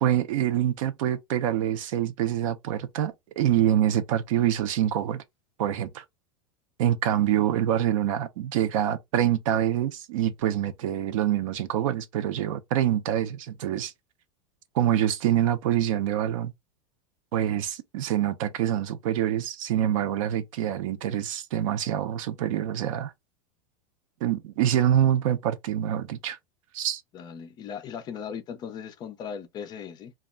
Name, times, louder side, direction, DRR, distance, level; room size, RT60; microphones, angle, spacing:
voice 1, 0.0-5.2 5.6-6.0 6.8-13.9 14.7-16.5 17.3-23.1 24.2-26.4 26.7-27.0, right 11 dB, 70° right, 0.6 m, -25 dB
voice 2, 27.1-30.1, left 7 dB, 25° left, 0.3 m, -38 dB
2.2 x 2.0 x 3.5 m
supercardioid pair, 150°, 18 cm